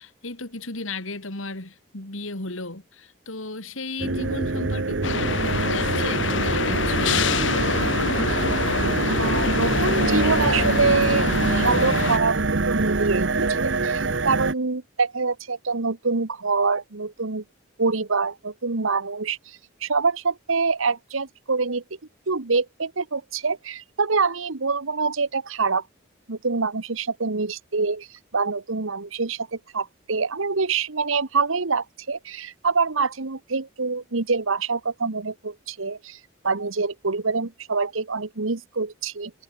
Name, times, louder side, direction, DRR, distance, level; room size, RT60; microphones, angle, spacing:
voice 1, 0.0-7.3, left 2 dB, 85° left, 3.9 m, -35 dB
sound 1, 4.0-14.5, right 3 dB, 65° right, 1.0 m, -25 dB
sound 2, 5.0-12.2, left 4 dB, 70° left, 1.4 m, -25 dB
voice 2, 9.2-17.4 17.8-21.8 22.3-25.8 26.3-36.2 36.4-39.3, right 4 dB, 85° right, 1.3 m, -25 dB
head